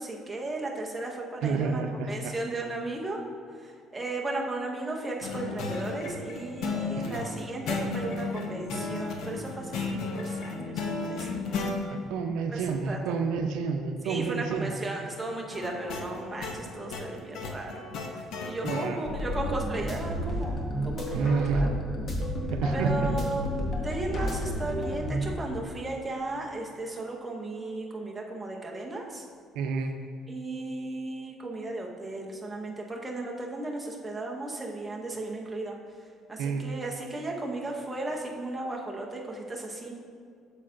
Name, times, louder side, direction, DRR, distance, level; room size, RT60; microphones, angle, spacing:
voice 1, 0.0-1.8 2.1-3.2 3.6-11.3 11.5-11.8 12.5-13.0 14.0-17.8 18.1-20.6 20.8-21.7 22.7-29.3 30.3-35.8 36.3-39.9, right 2 dB, 10° right, -1 dB, 0.6 m, -35 dB
voice 2, 1.4-2.3 7.0-7.2 12.1-14.7 18.5-19.1 21.1-21.6 22.5-23.1 29.6-29.9 36.4-36.7, right 5 dB, 80° right, 5 dB, 0.5 m, -29 dB
sound 1, 5.2-11.8 15.5-18.9, left 4 dB, 60° left, 0.7 m, -34 dB
sound 2, 19.0-25.4, equal, 30° left, 0.9 m, -31 dB
8.4 x 6.5 x 2.6 m, 2.3 s
cardioid pair, 180°, 0 cm